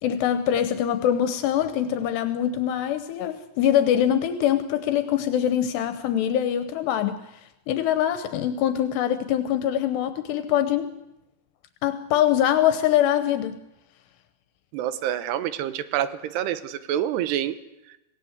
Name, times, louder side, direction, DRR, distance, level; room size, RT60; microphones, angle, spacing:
voice 1, 0.0-7.2 7.7-10.9 11.8-13.6, left 10 dB, 80° left, 10 dB, 3.1 m, -23 dB
voice 2, 14.7-17.6, right 11 dB, 80° right, 13 dB, 3.1 m, -27 dB
27.5 x 17.5 x 8.0 m, 0.93 s
omnidirectional pair, 4.9 m